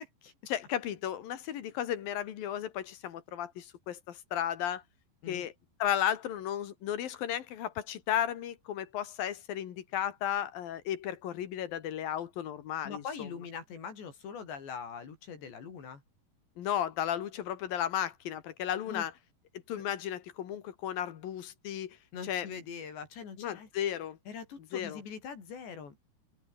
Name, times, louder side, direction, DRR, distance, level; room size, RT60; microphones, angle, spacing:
voice 1, 0.5-4.8 5.3-5.5 5.8-13.3 16.6-19.1 19.7-22.0 22.2-22.5 23.4-24.2 24.7-25.0, left 10 dB, 60° left, 3.3 m, -34 dB
voice 2, 12.8-16.0 18.9-19.1 22.1-23.7 24.3-26.0, left 6 dB, 80° left, 7.3 m, -42 dB
omnidirectional pair, 5.0 m